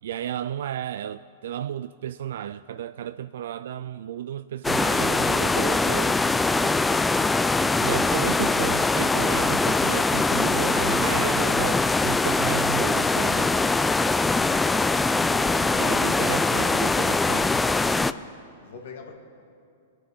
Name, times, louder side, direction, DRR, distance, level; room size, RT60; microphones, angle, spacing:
voice 1, 0.0-6.2 7.8-13.6 15.7-17.6, right 10 dB, 70° right, 0.3 m, -33 dB
sound 1, 4.6-18.1, left 3 dB, 10° left, 0.4 m, -22 dB
voice 2, 18.6-19.1, left 5 dB, 70° left, 2.5 m, -42 dB
23.5 x 8.8 x 5.6 m
hypercardioid pair, 115°, 0 cm